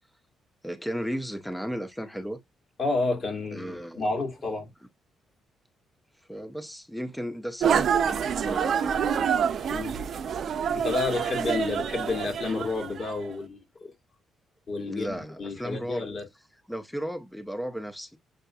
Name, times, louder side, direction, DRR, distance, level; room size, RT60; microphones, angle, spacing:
voice 1, 0.6-2.4 3.5-4.1 6.3-9.0 14.8-16.0 16.7-18.2, equal, 5° left, 0.6 m, -35 dB
voice 2, 2.8-4.7 9.7-10.0 10.7-13.9 14.7-16.2, left 3 dB, 45° left, 1.8 m, -30 dB
sound 1, 7.6-13.2, right 7 dB, 60° right, 0.5 m, -27 dB
6.6 x 2.4 x 2.3 m
cardioid pair, 90°, 0 cm